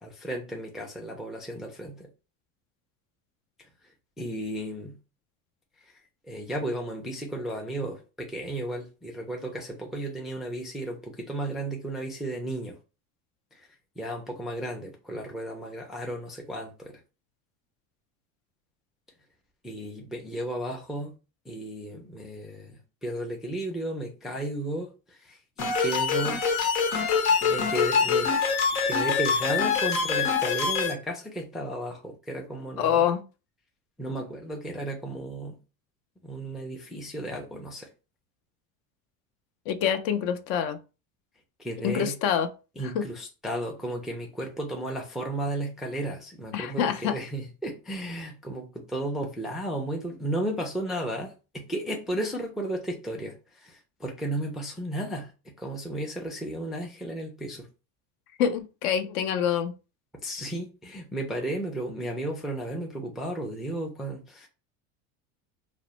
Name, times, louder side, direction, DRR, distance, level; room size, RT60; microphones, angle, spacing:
voice 1, 0.0-2.1 4.2-5.0 6.3-12.8 13.5-13.7 14.0-17.0 19.6-21.1 21.5-26.4 27.4-28.3 28.8-33.1 34.0-35.6 36.2-37.9 41.6-42.2 42.8-57.7 60.2-64.5, right 1 dB, ahead, 0.3 m, -34 dB
sound 1, 25.6-30.9, left 5 dB, 80° left, 0.9 m, -24 dB
voice 2, 32.8-33.2 39.7-40.8 41.8-42.5 42.9-43.0 46.5-47.2 58.4-59.7, left 8 dB, 60° left, 0.5 m, -26 dB
2.4 x 2.0 x 3.0 m
supercardioid pair, 100°, 41 cm